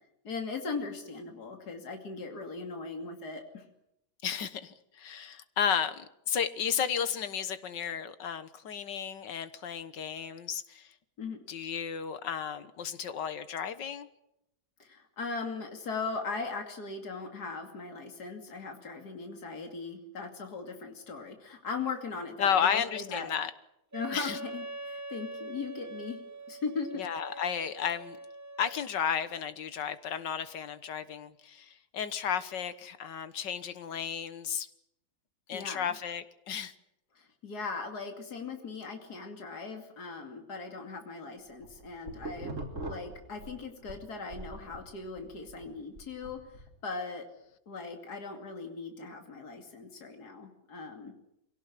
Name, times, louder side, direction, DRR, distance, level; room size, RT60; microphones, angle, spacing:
voice 1, 0.2-3.6 11.2-11.4 14.8-23.3 23.9-26.2 26.5-26.9 35.5-36.0 37.1-46.4 46.8-47.2 47.7-51.1, left 4 dB, 65° left, 4 dB, 3.1 m, -39 dB
voice 2, 4.2-10.9 11.5-14.1 22.4-23.5 24.1-24.4 27.0-28.2 28.6-34.7 35.5-36.7, left 8 dB, 80° left, 13 dB, 1.9 m, -33 dB
Wind instrument woodwind instrument, 23.9-29.0, right 2 dB, 15° right, 0.6 m, -43 dB
sound 1, 41.4-44.0 44.3-46.7, right 2 dB, 45° right, 3.8 m, -42 dB
24.0 x 17.5 x 9.9 m, 0.83 s
omnidirectional pair, 1.9 m